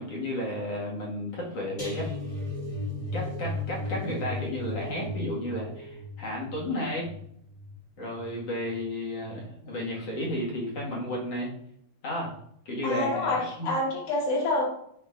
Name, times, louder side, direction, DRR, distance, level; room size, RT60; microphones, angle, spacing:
voice 1, 0.0-2.1 3.1-7.1 8.0-11.5 12.0-12.4 12.7-13.7, left 1 dB, 55° left, -5 dB, 3.0 m, -33 dB
sound 1, 1.8-8.9 9.2-9.5 9.8-10.0, left 2 dB, 20° left, 1.6 m, -36 dB
voice 2, 12.8-14.7, left 2 dB, 90° left, -4 dB, 3.5 m, -27 dB
8.6 x 4.5 x 2.6 m, 0.69 s
omnidirectional pair, 3.4 m